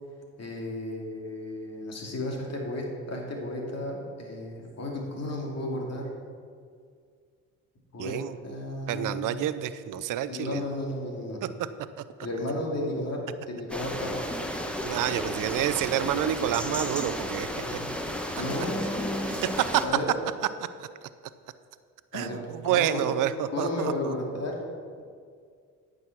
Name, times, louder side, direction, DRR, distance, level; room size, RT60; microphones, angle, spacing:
voice 1, 0.4-6.1 7.9-8.2 8.4-9.4 10.3-11.4 12.2-13.2 13.5-14.2 17.5-17.9 18.3-20.1 22.1-23.1 23.5-24.5, left 1 dB, 50° left, 0 dB, 2.6 m, -33 dB
voice 2, 8.0-8.3 8.9-10.7 11.6-11.7 14.8-17.8 19.3-19.8 20.8-20.9 22.1-24.1, right 11 dB, 70° right, 14 dB, 0.6 m, -28 dB
sound 1, 13.7-19.8, equal, 5° left, 1.3 m, -33 dB
9.5 x 6.4 x 5.9 m, 2.1 s
supercardioid pair, 60°, 33 cm